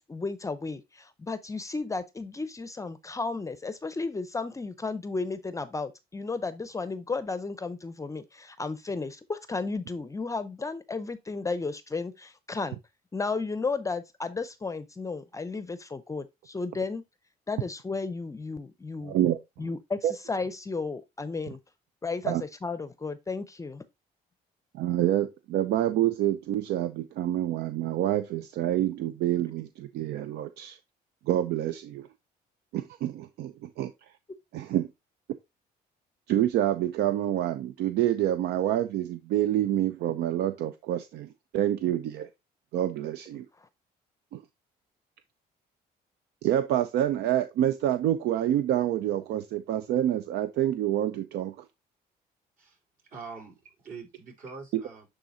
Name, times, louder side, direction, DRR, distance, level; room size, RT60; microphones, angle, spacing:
voice 1, 0.1-12.8 13.1-17.0 17.5-19.2 19.6-21.6 22.0-23.8 43.6-43.7, left 4 dB, 20° left, 0.6 m, -33 dB
voice 2, 19.0-19.4 20.0-20.1 22.3-22.4 24.7-30.8 31.3-32.1 32.7-33.9 34.5-34.9 36.3-42.3 42.7-43.5 44.3-44.4 46.4-51.6, right 12 dB, 75° right, 0.5 m, -27 dB
voice 3, 53.0-55.1, right 5 dB, 55° right, 3.9 m, -44 dB
10.5 x 3.9 x 2.6 m
cardioid pair, 110°, 17 cm